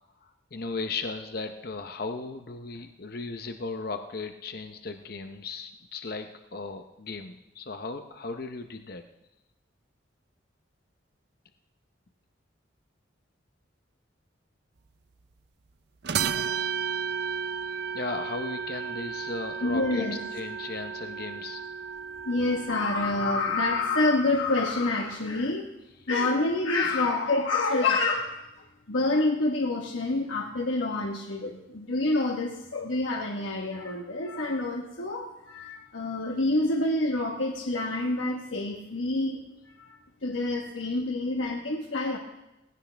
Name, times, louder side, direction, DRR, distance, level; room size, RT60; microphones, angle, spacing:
voice 1, 0.2-9.0 17.9-21.6 26.8-27.0 40.8-41.0, left 3 dB, 50° left, 6 dB, 0.7 m, -36 dB
sound 1, 16.0-24.1, right 6 dB, 55° right, 0.6 m, -34 dB
voice 2, 19.6-20.2 22.2-25.7 26.1-28.3 28.9-39.4 39.8-39.9 40.2-42.2, left 2 dB, 80° left, 0 dB, 1.3 m, -27 dB
18.5 x 16.0 x 3.4 m, 0.94 s
head